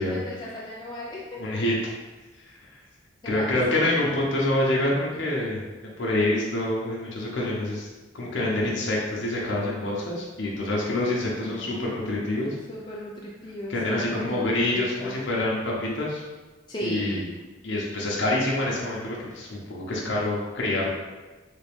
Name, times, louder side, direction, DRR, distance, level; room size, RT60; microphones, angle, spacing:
voice 1, 0.1-1.4 3.2-3.9 11.4-11.9 12.4-14.4 14.7-15.2 16.7-17.2, left 1 dB, 25° left, -5 dB, 0.4 m, -37 dB
voice 2, 1.4-1.7 2.4-2.6 3.2-5.6 6.0-7.9 8.1-12.6 13.7-16.2 16.8-17.2 17.6-20.9, left 1 dB, 70° left, -4 dB, 0.8 m, -26 dB
3.5 x 2.5 x 3.4 m, 1.2 s
head